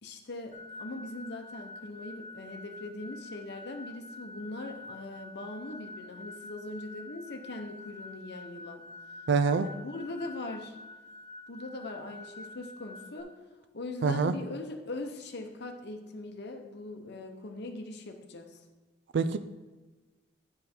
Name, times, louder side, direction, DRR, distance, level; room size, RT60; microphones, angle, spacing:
voice 1, 0.0-8.8 9.6-10.8 11.5-13.3 13.7-18.6, left 2 dB, 60° left, 4 dB, 0.8 m, -41 dB
sound 1, 0.5-13.2, left 2 dB, 35° right, 1.2 m, -47 dB
voice 2, 9.3-9.7 14.0-14.3 19.1-19.4, right 5 dB, 65° right, 12 dB, 0.4 m, -25 dB
9.7 x 5.5 x 4.4 m, 1.3 s
head